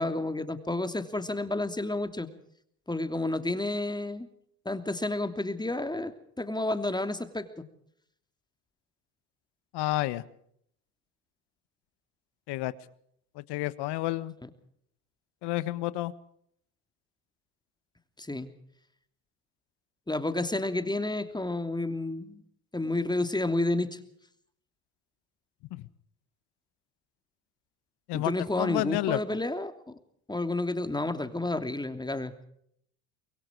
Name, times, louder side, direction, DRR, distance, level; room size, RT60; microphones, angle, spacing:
voice 1, 0.0-2.3 2.9-4.3 4.6-7.6 14.4-14.5 18.2-18.5 20.1-22.4 22.7-24.0 28.1-29.8 30.3-32.3, left 2 dB, 10° left, 8 dB, 3.0 m, -30 dB
voice 2, 9.7-10.2 12.5-12.7 13.3-14.3 15.4-16.1 25.7-25.9 28.1-29.2, left 17 dB, 65° left, 15 dB, 1.6 m, -30 dB
25.5 x 22.0 x 4.7 m, 0.69 s
hypercardioid pair, 70°, 43 cm